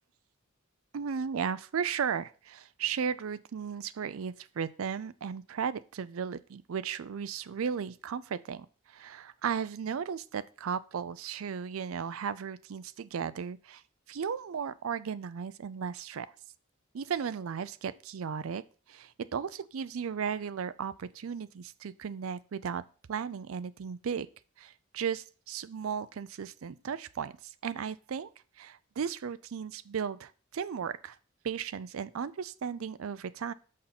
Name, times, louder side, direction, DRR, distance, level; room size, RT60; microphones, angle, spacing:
voice 1, 0.9-13.8 14.1-16.3 16.9-18.6 18.9-22.8 23.1-24.3 24.6-27.3 27.6-28.3 28.6-31.2 31.4-33.5, right 7 dB, 75° right, 15 dB, 0.4 m, -35 dB
6.5 x 5.5 x 5.8 m, 0.39 s
head